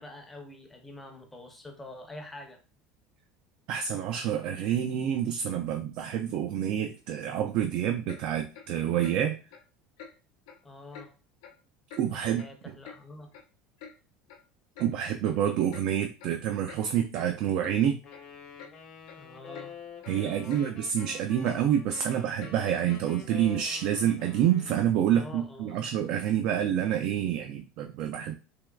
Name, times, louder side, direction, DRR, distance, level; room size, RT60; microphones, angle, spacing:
voice 1, 0.0-2.6 10.6-11.1 12.1-13.3 19.2-19.7 20.0-20.7 25.1-25.8, left 2 dB, 10° left, 0.6 m, -46 dB
voice 2, 3.7-9.4 12.0-12.5 14.8-18.0 20.1-28.3, right 10 dB, 55° right, 0.3 m, -28 dB
Clock, 8.1-8.2 8.5-8.7 9.0-9.2 9.5-9.6 10.0-10.1 10.5-10.6 10.9-11.1 11.4-11.6 11.9-12.0 12.4-13.0 13.3-13.4 13.8-13.9 14.3-14.4 14.8-14.9 15.2-15.4 15.7-15.9 16.2-16.4 16.7-16.8 17.1-17.3 17.6-17.8 18.1-18.2 18.6-18.7 19.1-19.2 19.5-19.7 20.0-20.2 20.5-20.7 20.9-21.1 21.4-21.6 21.9-22.1 22.4-22.6 22.9-23.0, left 6 dB, 90° left, 0.6 m, -47 dB
Wind instrument woodwind instrument, 18.0-25.0, left 5 dB, 35° left, 0.9 m, -47 dB
3.5 x 3.0 x 2.3 m
cardioid pair, 150°, 2 cm